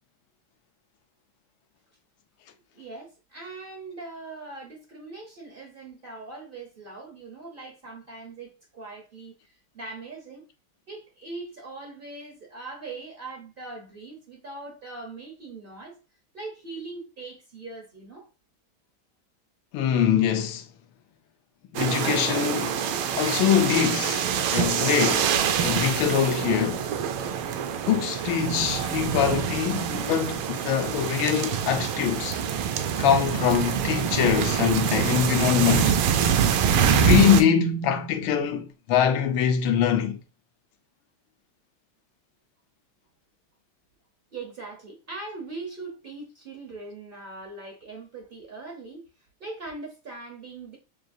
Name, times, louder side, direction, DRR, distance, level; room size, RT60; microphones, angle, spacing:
voice 1, 2.7-10.4 10.9-16.0 16.3-18.3 44.3-49.0 49.4-50.8, right 3 dB, 70° right, 0.5 m, -41 dB
voice 2, 19.7-20.7 21.7-22.8 23.2-25.3 25.6-26.9 27.9-32.4 33.0-36.0 36.9-40.2, left 8 dB, 80° left, 1.4 m, -23 dB
sound 1, 21.8-37.4, right 8 dB, 90° right, 1.5 m, -25 dB
6.1 x 2.3 x 2.5 m
omnidirectional pair, 2.2 m